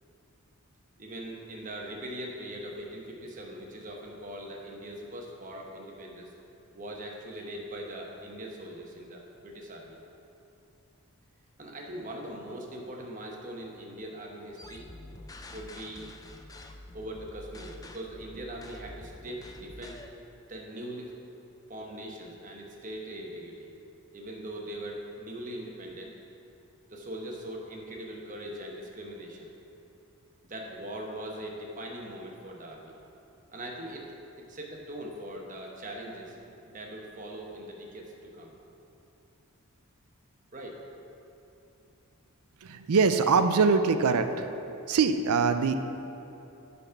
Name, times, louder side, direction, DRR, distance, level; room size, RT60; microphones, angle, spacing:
voice 1, 1.0-6.3 6.7-10.0 11.6-14.9 15.5-16.0 16.9-20.0 20.5-21.1 21.7-23.7 24.1-26.2 26.9-29.5 30.4-33.0 33.5-34.1 34.4-36.4 36.6-38.5 40.5-40.8, right 1 dB, 35° right, 0 dB, 1.0 m, -41 dB
sound 1, 14.6-20.1, left 2 dB, 15° left, 0.3 m, -47 dB
voice 2, 42.6-44.5 44.9-45.8, right 5 dB, 85° right, 9 dB, 0.5 m, -23 dB
10.0 x 4.2 x 5.7 m, 2.8 s
head